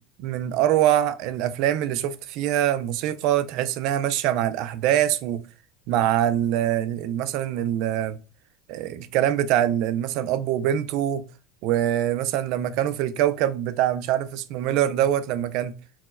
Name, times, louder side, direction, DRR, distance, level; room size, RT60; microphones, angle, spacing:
voice 1, 0.2-5.4 5.9-8.2 8.7-11.2 11.6-15.7, right 11 dB, 60° right, 0.3 m, -24 dB
4.1 x 2.1 x 2.2 m
supercardioid pair, 120°, 0 cm